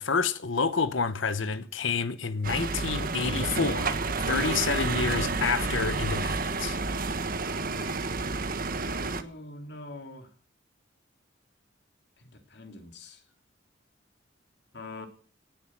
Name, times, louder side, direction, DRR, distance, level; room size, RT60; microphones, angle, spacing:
voice 1, 0.0-4.0 4.3-6.8, left 5 dB, 80° left, 1.0 m, -29 dB
sound 1, 2.4-9.2, right 3 dB, 45° right, 1.4 m, -30 dB
voice 2, 9.0-10.3 12.5-13.2 14.7-15.1, left 2 dB, 60° left, 3.1 m, -43 dB
18.0 x 9.9 x 7.5 m
head